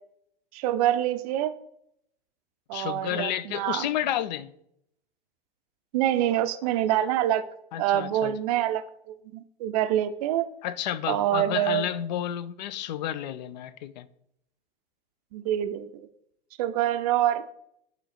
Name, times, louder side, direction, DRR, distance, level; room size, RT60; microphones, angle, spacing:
voice 1, 0.5-1.5 2.7-3.9 5.9-7.4 7.8-10.5 11.1-11.8 15.3-16.1 16.6-17.5, right 12 dB, 40° right, 0.5 m, -26 dB
voice 2, 2.7-4.5 7.7-8.3 10.6-14.1, left 11 dB, 50° left, 0.4 m, -31 dB
7.8 x 3.1 x 4.2 m
figure-of-eight pair, 100°, 30 cm